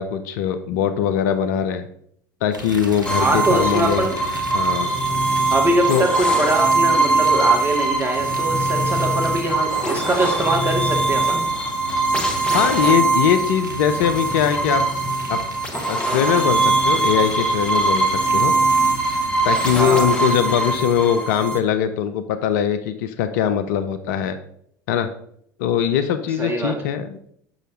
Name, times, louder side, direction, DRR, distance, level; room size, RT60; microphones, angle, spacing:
voice 1, 0.0-1.9 2.4-4.1 4.5-4.9 5.9-6.1 12.5-14.8 15.3-15.4 15.9-18.5 19.4-24.4 24.9-25.1 25.6-27.3, left 9 dB, 60° left, 10 dB, 0.6 m, -21 dB
sound 1, 2.5-20.2, right 1 dB, 85° right, 1.1 m, -37 dB
sound 2, 3.0-21.6, right 3 dB, 10° left, 1.1 m, -21 dB
voice 2, 3.2-4.2 5.5-11.4 19.7-20.1 26.4-26.7, right 2 dB, 20° right, 2 dB, 1.7 m, -22 dB
6.4 x 6.3 x 3.1 m, 0.66 s
figure-of-eight pair, 75°, 10 cm